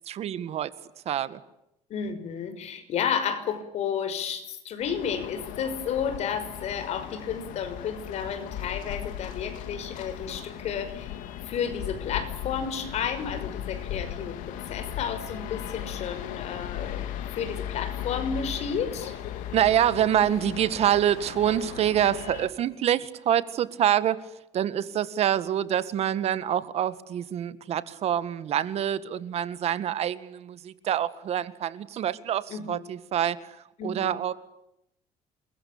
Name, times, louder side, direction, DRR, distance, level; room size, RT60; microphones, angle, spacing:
voice 1, 0.1-0.7 1.1-1.4 19.5-24.2 24.5-33.6 33.8-34.3, right 10 dB, 55° right, 14 dB, 1.8 m, -26 dB
voice 2, 1.9-11.1 11.5-19.1 32.5-32.8 33.8-34.2, left 7 dB, 55° left, 10 dB, 5.8 m, -32 dB
sound 1, 4.8-22.5, left 10 dB, 85° left, 3.2 m, -37 dB
28.5 x 22.5 x 8.7 m, 0.82 s
cardioid pair, 135°, 13 cm